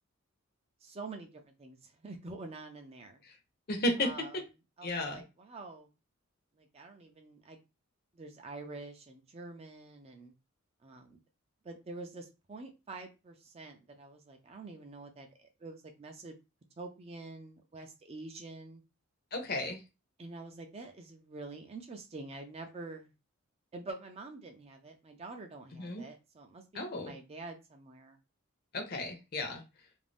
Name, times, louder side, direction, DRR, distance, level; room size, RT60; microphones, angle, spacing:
voice 1, 0.8-3.2 4.0-4.4 4.8-5.9 6.6-7.6 8.1-10.3 10.8-11.2 11.6-16.3 16.8-18.8 20.2-23.1 23.7-28.2, right 3 dB, 25° right, 5 dB, 0.4 m, -47 dB
voice 2, 3.7-4.1 4.8-5.2 19.3-19.8 25.7-26.0 26.7-27.1 28.7-29.6, left 1 dB, 45° left, 4 dB, 0.6 m, -33 dB
2.5 x 2.1 x 3.3 m, 0.27 s
head